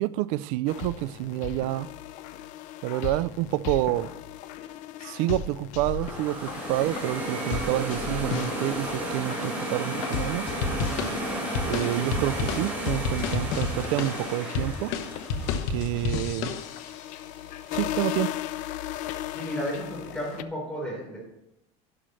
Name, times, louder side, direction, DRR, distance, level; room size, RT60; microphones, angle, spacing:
voice 1, 0.0-1.9 2.8-4.1 5.0-10.5 11.6-14.9 15.4-16.6 17.7-18.4, right 16 dB, 70° right, 0.4 m, -28 dB
sound 1, 0.7-20.4, left 10 dB, 50° left, 0.5 m, -36 dB
sound 2, 5.9-16.9, right 1 dB, 10° right, 5.0 m, -33 dB
sound 3, 10.6-17.0, left 4 dB, 75° left, 1.2 m, -31 dB
voice 2, 19.3-21.2, equal, 5° left, 4.0 m, -33 dB
11.5 x 11.5 x 3.2 m
cardioid pair, 150°, 16 cm